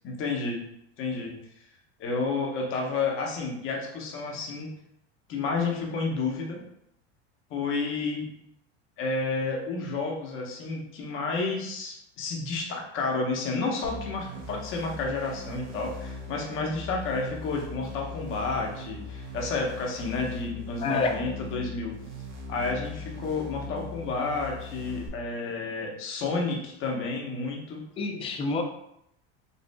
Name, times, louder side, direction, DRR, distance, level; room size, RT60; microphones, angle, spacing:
voice 1, 0.0-0.6 1.0-1.3 2.0-4.7 5.3-6.6 7.5-8.3 9.0-21.9 22.5-27.8, left 3 dB, 40° left, 0 dB, 1.0 m, -31 dB
sound 1, 13.8-25.1, left 2 dB, 55° right, 1.1 m, -40 dB
voice 2, 20.8-21.2 28.0-28.6, left 3 dB, 20° left, 4 dB, 0.4 m, -27 dB
5.3 x 2.6 x 2.2 m, 0.76 s
supercardioid pair, 140°, 33 cm